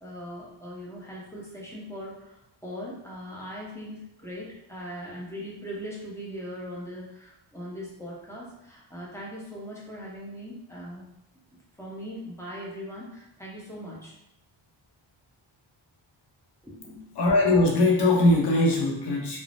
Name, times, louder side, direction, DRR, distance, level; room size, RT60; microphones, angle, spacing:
voice 1, 0.0-11.0 11.8-14.2 16.6-17.1, equal, 5° left, -5 dB, 0.6 m, -40 dB
voice 2, 17.2-19.4, left 2 dB, 55° left, -1 dB, 0.7 m, -21 dB
3.2 x 2.0 x 2.5 m, 0.82 s
wide cardioid pair, 135°, 48 cm